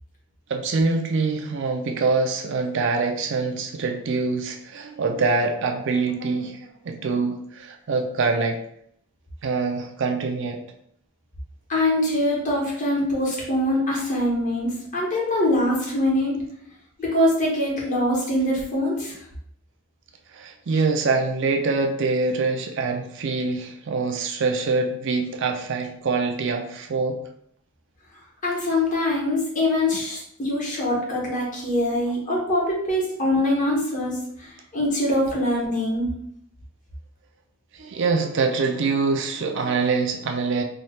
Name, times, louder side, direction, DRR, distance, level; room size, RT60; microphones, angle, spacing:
voice 1, 0.5-8.6 9.4-10.6 20.3-27.2 32.0-32.1 37.7-40.6, right 4 dB, 60° right, 4 dB, 0.5 m, -24 dB
voice 2, 11.7-16.3 17.0-19.2 28.4-36.1, left 1 dB, 40° left, -4 dB, 1.3 m, -23 dB
3.2 x 2.4 x 4.2 m, 0.69 s
head